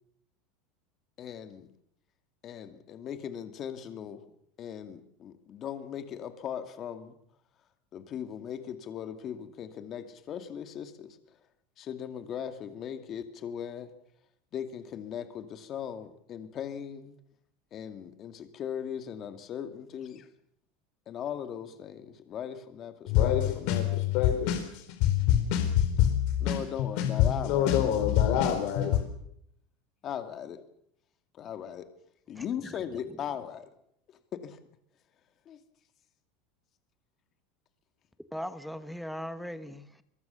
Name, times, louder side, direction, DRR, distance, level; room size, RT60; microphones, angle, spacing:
voice 1, 1.2-1.7 2.4-4.2 4.6-7.2 7.9-11.2 11.8-13.9 14.5-17.2 17.7-20.3 21.1-23.6 26.4-27.8 30.0-30.6 31.3-31.9 32.3-33.7 34.3-34.6 35.5-35.6, left 9 dB, 30° left, 9 dB, 2.3 m, -38 dB
voice 2, 23.1-29.0, left 10 dB, 55° left, 5 dB, 4.3 m, -25 dB
voice 3, 32.3-32.8 38.3-40.0, equal, ahead, 11 dB, 1.2 m, -39 dB
23.5 x 22.5 x 7.1 m, 0.73 s
supercardioid pair, 150°, 0 cm